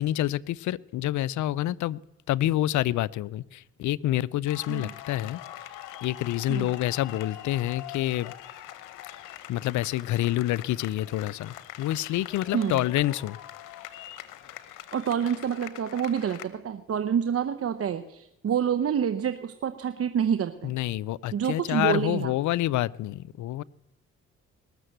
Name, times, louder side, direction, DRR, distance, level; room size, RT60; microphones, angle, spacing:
voice 1, 0.0-2.0 2.3-5.4 6.0-8.3 9.5-13.4 20.6-23.6, left 14 dB, 70° left, 21 dB, 0.5 m, -27 dB
sound 1, 4.5-16.5, left 13 dB, 90° left, 0.9 m, -43 dB
voice 2, 14.9-20.7 21.3-22.3, right 8 dB, 50° right, 10 dB, 0.8 m, -27 dB
19.5 x 6.8 x 7.8 m, 0.90 s
supercardioid pair, 60°, 30 cm